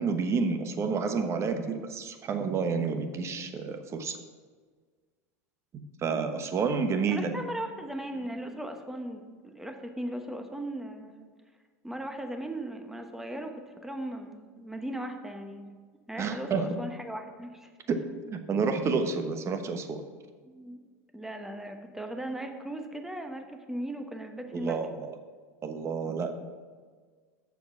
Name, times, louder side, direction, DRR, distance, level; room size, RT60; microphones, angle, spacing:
voice 1, 0.0-4.2 6.0-7.3 16.2-16.8 17.9-18.0 18.3-20.0 24.5-25.1 25.6-26.3, right 5 dB, 35° right, 7 dB, 1.0 m, -29 dB
voice 2, 7.1-11.2 11.8-15.7 16.1-17.7 20.4-20.8 21.1-24.8, right 1 dB, 5° right, 5 dB, 1.0 m, -38 dB
7.1 x 6.9 x 6.0 m, 1.5 s
hypercardioid pair, 100°, 8 cm